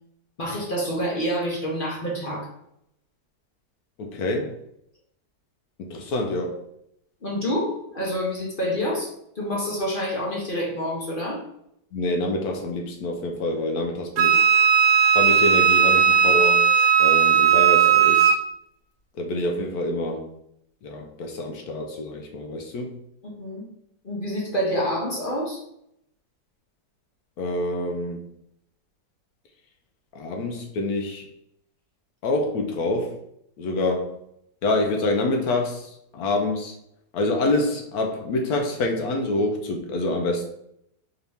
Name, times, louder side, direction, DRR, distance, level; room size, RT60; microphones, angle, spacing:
voice 1, 0.4-2.5 7.2-11.4 23.2-23.7 24.0-25.6, equal, 40° left, -3 dB, 0.8 m, -27 dB
voice 2, 4.0-4.6 5.8-6.6 11.9-14.4 15.1-16.7 17.0-18.4 19.1-20.3 20.8-23.0 27.4-28.2 30.1-31.3 32.2-33.2 33.6-34.2 34.6-36.7 37.1-40.4, left 2 dB, 70° left, 2 dB, 1.0 m, -26 dB
Wind instrument woodwind instrument, 14.2-18.4, right 7 dB, 80° right, 1.2 m, -17 dB
3.9 x 2.8 x 3.4 m, 0.76 s
omnidirectional pair, 1.8 m